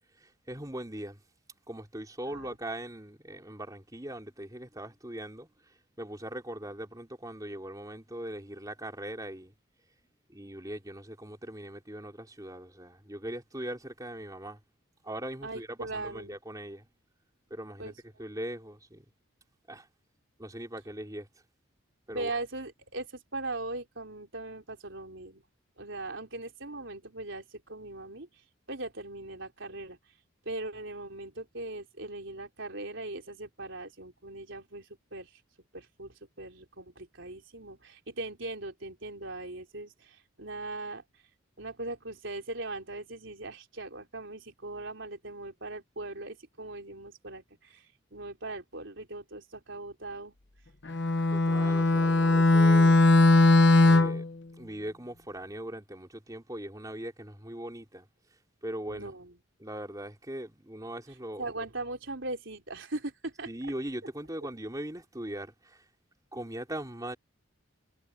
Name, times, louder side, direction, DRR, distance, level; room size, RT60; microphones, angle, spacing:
voice 1, 0.5-1.2 1.7-5.5 6.0-9.5 10.3-14.6 15.0-16.8 17.5-17.9 18.2-19.0 19.7-19.9 20.4-21.3 22.1-22.3 51.3-53.0 53.8-54.2 54.6-58.0 58.6-59.1 59.6-61.5 63.5-65.8 66.3-67.2, right 1 dB, 15° right, 4.0 m, -40 dB
voice 2, 2.3-2.6 15.4-16.4 17.8-18.0 22.1-25.4 25.8-28.3 28.7-30.0 30.5-34.9 35.1-35.3 35.7-41.0 41.6-47.8 48.1-50.3 58.9-59.4 61.4-63.5, right 2 dB, 60° right, 4.1 m, -39 dB
Bowed string instrument, 50.9-54.3, left 2 dB, 55° left, 1.1 m, -20 dB
head